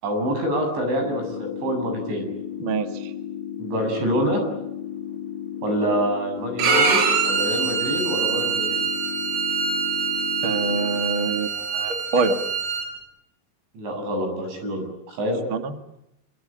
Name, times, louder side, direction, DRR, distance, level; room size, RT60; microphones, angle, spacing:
voice 1, 0.0-2.3 3.6-4.4 5.6-8.8 13.7-15.4, equal, 65° right, 4 dB, 10.0 m, -26 dB
sound 1, 1.0-11.0, left 10 dB, 45° left, 1.6 m, -34 dB
voice 2, 2.6-3.1 10.4-12.4 15.5-15.7, right 4 dB, 45° right, 7 dB, 1.6 m, -25 dB
Bowed string instrument, 6.6-12.9, right 5 dB, 80° right, 8.1 m, -24 dB
26.0 x 25.0 x 8.8 m, 0.83 s
omnidirectional pair, 5.6 m